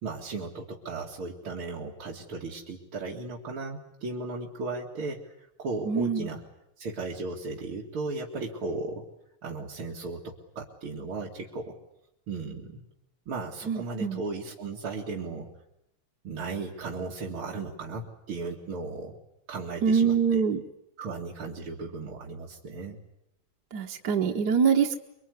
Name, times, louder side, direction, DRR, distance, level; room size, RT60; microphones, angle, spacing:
voice 1, 0.0-6.4 6.8-9.1 9.4-11.8 12.3-12.8 13.3-15.5 16.2-19.2 19.5-20.4 21.0-23.0, right 3 dB, 85° right, -3 dB, 3.2 m, -36 dB
voice 2, 5.9-6.3 13.7-14.2 19.8-20.6 23.7-25.0, right 6 dB, 55° right, 3 dB, 1.8 m, -24 dB
25.0 x 24.0 x 9.6 m, 0.83 s
omnidirectional pair, 2.3 m